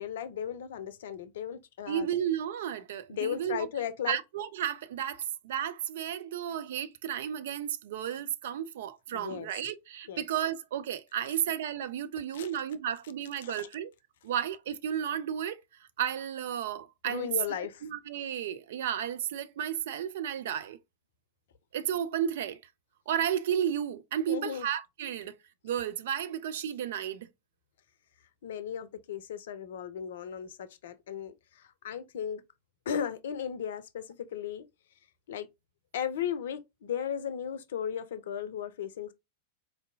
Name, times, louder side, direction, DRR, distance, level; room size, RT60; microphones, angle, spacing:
voice 1, 0.0-2.1 3.1-4.2 9.1-9.5 10.1-10.2 12.3-12.5 13.4-13.7 17.0-17.8 24.3-24.7 28.4-32.4 32.9-34.7 35.3-35.5 35.9-39.1, left 8 dB, 60° left, 0.5 m, -36 dB
voice 2, 1.9-3.7 4.1-13.9 14.2-15.6 16.0-17.3 17.8-20.8 21.7-22.6 23.1-25.3 25.6-27.3, right 9 dB, 55° right, 0.4 m, -33 dB
4.3 x 2.6 x 2.6 m
figure-of-eight pair, 90°, 0 cm